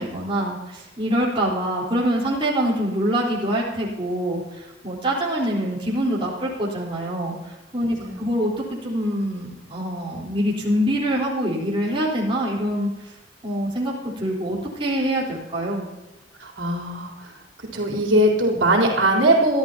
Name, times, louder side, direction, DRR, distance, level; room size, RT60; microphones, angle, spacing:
voice 1, 0.0-7.4 7.7-12.9 13.4-15.9, equal, 30° right, -4 dB, 4.0 m, -25 dB
voice 2, 7.9-8.3 16.4-17.4 17.7-19.6, right 1 dB, 80° right, -1 dB, 3.7 m, -20 dB
23.5 x 13.5 x 2.9 m, 1.1 s
head